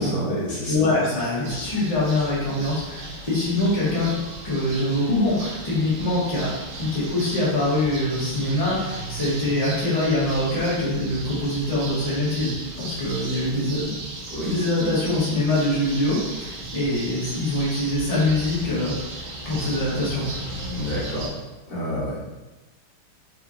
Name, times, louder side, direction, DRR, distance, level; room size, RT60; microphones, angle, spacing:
voice 1, 0.0-0.9 14.3-14.5 14.8-14.9 20.6-21.3 21.7-22.2, equal, 50° left, -9 dB, 1.5 m, -28 dB
voice 2, 0.7-4.2 4.4-6.5 6.8-13.9 14.4-19.2 19.4-20.3 20.7-20.8, left 1 dB, 35° left, -9 dB, 0.6 m, -24 dB
sound 1, 1.4-21.3, right 2 dB, 80° right, 1.7 m, -36 dB
4.1 x 2.8 x 2.5 m, 1.1 s
omnidirectional pair, 2.4 m